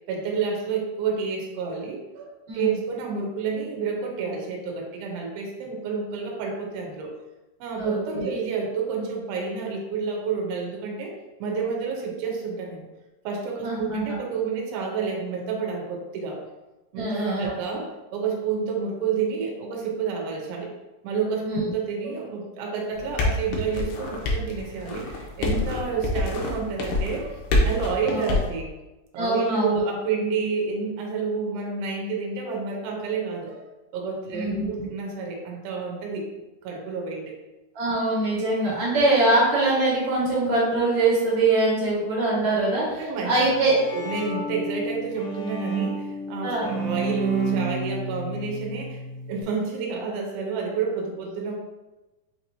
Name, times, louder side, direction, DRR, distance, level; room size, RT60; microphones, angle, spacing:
voice 1, 0.1-2.3 2.5-7.1 7.6-11.1 11.4-12.9 13.2-16.4 16.9-20.7 21.0-28.7 29.1-33.6 33.9-36.3 36.6-37.4 43.0-43.5 43.9-49.0 49.3-51.5, right 5 dB, 80° right, 0 dB, 2.7 m, -29 dB
voice 2, 2.5-2.8 7.8-8.3 13.6-14.2 17.0-17.5 21.4-21.6 28.1-28.4 29.2-29.8 34.3-34.9 37.8-43.8 46.4-46.7, right 2 dB, 55° right, -7 dB, 2.4 m, -23 dB
sound 1, 22.9-28.5, left 2 dB, 80° left, 2.3 m, -26 dB
Bowed string instrument, 43.3-49.4, right 3 dB, 45° left, 1.7 m, -30 dB
6.5 x 2.9 x 2.7 m, 1.1 s
omnidirectional pair, 4.3 m